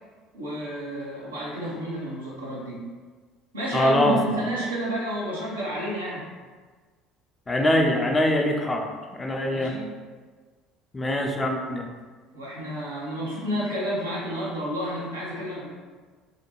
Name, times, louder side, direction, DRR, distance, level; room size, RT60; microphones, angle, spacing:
voice 1, 0.3-2.8 3.5-6.3 9.5-9.9 12.3-15.7, equal, 85° right, -7 dB, 0.7 m, -30 dB
voice 2, 3.7-4.2 7.5-9.7 10.9-11.9, left 1 dB, 20° left, 2 dB, 0.4 m, -23 dB
2.5 x 2.2 x 2.9 m, 1.5 s
figure-of-eight pair, 60°, 0 cm